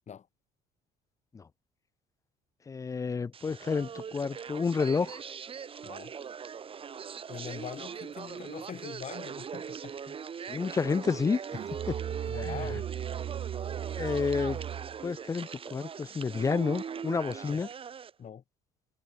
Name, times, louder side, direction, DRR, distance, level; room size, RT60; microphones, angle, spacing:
voice 1, 2.7-5.2 10.5-11.4 11.9-12.0 12.4-12.7 14.0-14.6 15.0-17.7, left 5 dB, 20° left, 0.4 m, -30 dB
sound 1, 3.3-18.1, right 7 dB, 35° right, 0.9 m, -40 dB
voice 2, 7.3-9.9 12.3-12.8 18.2-18.4, left 8 dB, 45° left, 4.7 m, -42 dB
Musical instrument, 11.5-15.1, right 11 dB, 55° right, 1.4 m, -37 dB
cardioid pair, 110°, 17 cm